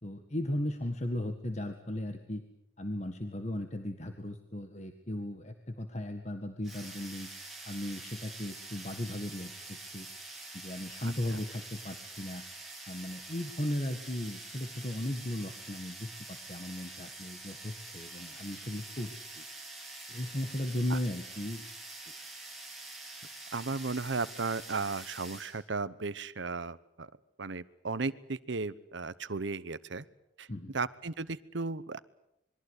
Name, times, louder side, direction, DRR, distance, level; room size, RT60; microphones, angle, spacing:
voice 1, 0.0-2.4 2.8-7.3 7.6-10.1 10.5-12.4 12.9-19.4 20.1-21.6 30.5-30.7, left 1 dB, 35° left, 6 dB, 1.7 m, -36 dB
sound 1, 6.6-25.6, right 2 dB, ahead, 5.4 m, -46 dB
voice 2, 23.5-27.1 27.4-30.0 30.4-30.5 30.7-32.0, right 4 dB, 75° right, 15 dB, 0.9 m, -35 dB
27.0 x 22.0 x 8.2 m, 0.80 s
head